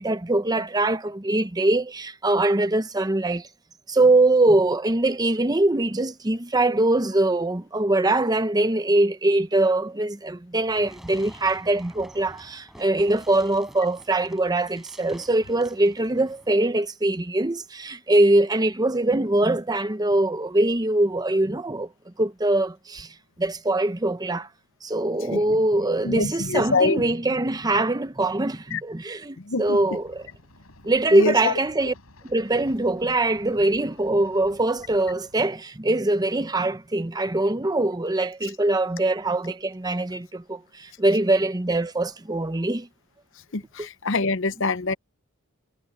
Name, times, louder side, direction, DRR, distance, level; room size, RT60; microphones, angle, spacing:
voice 1, 0.0-3.5 3.9-21.9 22.2-23.1 23.4-24.5 24.8-30.2 30.8-31.9 32.3-42.9, right 2 dB, 20° right, 0.8 m, -22 dB
Fireworks, 10.6-16.6, equal, ahead, 6.2 m, -48 dB
voice 2, 26.0-27.0 28.7-28.8 29.4-29.8 31.1-31.5 43.5-44.9, left 3 dB, 60° left, 0.9 m, -25 dB
sound 1, 29.6-35.4, left 1 dB, 80° left, 6.1 m, -52 dB
head